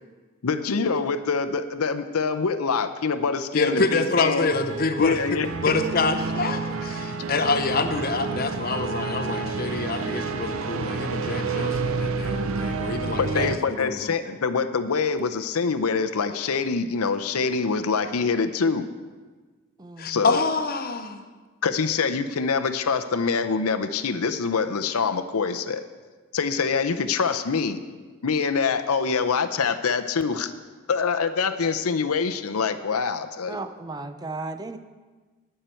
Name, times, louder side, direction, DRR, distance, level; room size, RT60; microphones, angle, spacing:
voice 1, 0.4-4.5 5.0-5.7 13.2-18.9 20.0-20.4 21.6-25.8 26.3-27.8 28.2-30.5 30.9-33.7, left 5 dB, 85° left, 9 dB, 0.7 m, -25 dB
voice 2, 3.5-14.3 20.0-21.2, left 3 dB, 45° left, 8 dB, 0.8 m, -27 dB
sound 1, 4.5-13.6, right 4 dB, 70° right, 0.6 m, -29 dB
voice 3, 19.8-20.3 33.5-34.8, right 3 dB, 20° right, 9 dB, 0.5 m, -35 dB
19.5 x 6.7 x 4.4 m, 1.4 s
head